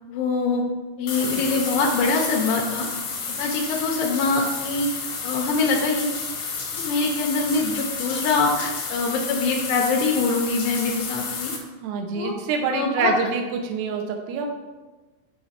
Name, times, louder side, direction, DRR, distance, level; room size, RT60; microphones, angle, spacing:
voice 1, 0.1-0.7 1.0-2.9 3.3-6.1 6.7-11.5 12.1-12.3 12.7-13.1, left 3 dB, 85° left, 0 dB, 2.6 m, -24 dB
sound 1, 1.1-11.6, left 5 dB, 60° left, 1.9 m, -31 dB
voice 2, 11.8-14.5, right 5 dB, 75° right, 3 dB, 2.8 m, -26 dB
7.3 x 5.3 x 5.0 m, 1.2 s
omnidirectional pair, 5.3 m